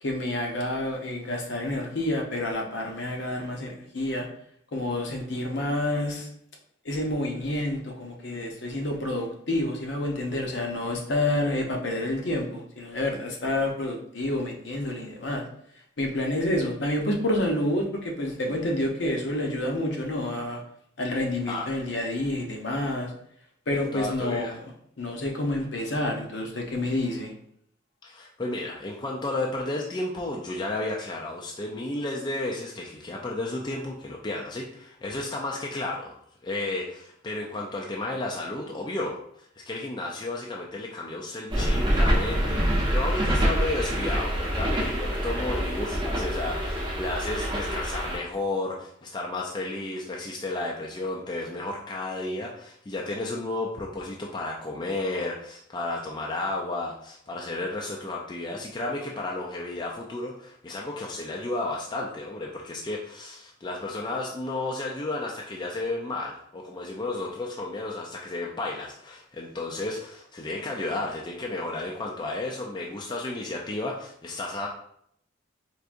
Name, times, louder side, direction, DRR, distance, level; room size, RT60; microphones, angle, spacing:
voice 1, 0.0-4.3 4.7-6.3 6.8-15.4 16.0-20.6 21.0-23.1 23.7-24.7 25.0-27.3, left 1 dB, 60° left, 1 dB, 0.7 m, -28 dB
voice 2, 23.7-24.6 28.0-39.2 39.6-74.7, left 2 dB, 20° left, -2 dB, 0.3 m, -32 dB
sound 1, 41.5-48.2, equal, 25° right, 0.7 m, -26 dB
4.6 x 2.6 x 2.5 m, 0.69 s
head